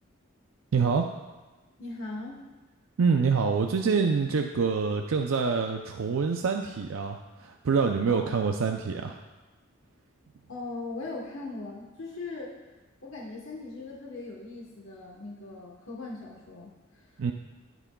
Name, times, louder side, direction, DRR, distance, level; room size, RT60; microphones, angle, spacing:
voice 1, 0.7-1.1 3.0-9.2 17.2-17.3, right 5 dB, 70° right, 4 dB, 0.5 m, -26 dB
voice 2, 1.8-2.5 8.1-8.3 10.5-12.5 13.0-17.1, left 3 dB, 65° left, -2 dB, 1.2 m, -39 dB
16.5 x 6.1 x 2.3 m, 1.2 s
head